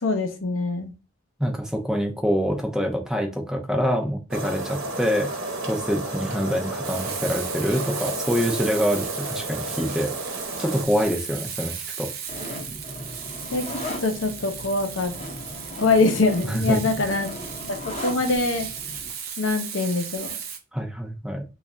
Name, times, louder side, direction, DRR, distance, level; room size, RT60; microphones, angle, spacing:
voice 1, 0.0-0.9 13.5-15.1 15.8-17.3 17.7-18.7 19.4-20.4, left 3 dB, 70° left, 5 dB, 0.6 m, -24 dB
voice 2, 1.4-5.3 5.7-10.1 10.6-12.1 16.5-16.8 20.7-21.4, equal, 5° right, 2 dB, 0.5 m, -25 dB
sound 1, 4.3-10.9, right 2 dB, 75° right, 0.9 m, -32 dB
Frying (food), 6.8-20.6, right 7 dB, 50° right, 0.6 m, -36 dB
sound 2, 12.3-19.1, left 1 dB, 30° left, 0.7 m, -37 dB
3.1 x 2.4 x 3.8 m, 0.30 s
head